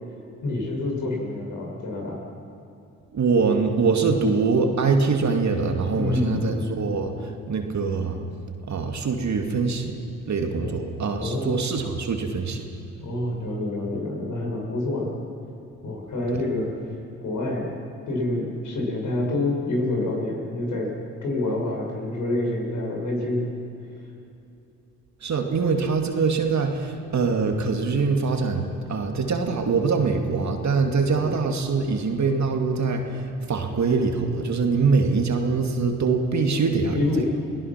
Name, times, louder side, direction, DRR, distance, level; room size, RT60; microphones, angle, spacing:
voice 1, 0.4-2.2 5.9-6.6 10.6-10.8 11.2-11.5 13.0-15.1 15.8-16.7 17.2-17.7 18.1-20.9 21.2-23.5 30.9-31.3 36.9-37.2, left 2 dB, 60° left, -1 dB, 6.5 m, -27 dB
voice 2, 3.1-8.2 8.7-10.0 10.3-12.6 16.3-16.4 25.2-37.0, right 4 dB, 50° right, 3 dB, 2.6 m, -23 dB
29.0 x 18.5 x 6.1 m, 2.8 s
hypercardioid pair, 45°, 35 cm